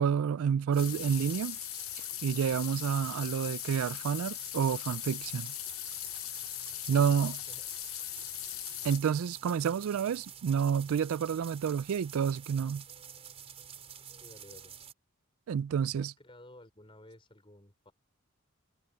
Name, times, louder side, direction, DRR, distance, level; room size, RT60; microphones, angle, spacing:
voice 1, 0.0-1.6 2.2-5.5 6.9-7.4 8.8-12.8 15.5-16.1, right 7 dB, 75° right, 0.3 m, -29 dB
sound 1, 0.7-14.9, right 8 dB, 30° right, 4.7 m, -49 dB
sound 2, 0.8-9.0, left 16 dB, 75° left, 0.8 m, -40 dB
voice 2, 14.2-14.7 16.0-17.9, left 1 dB, 25° left, 5.3 m, -54 dB
head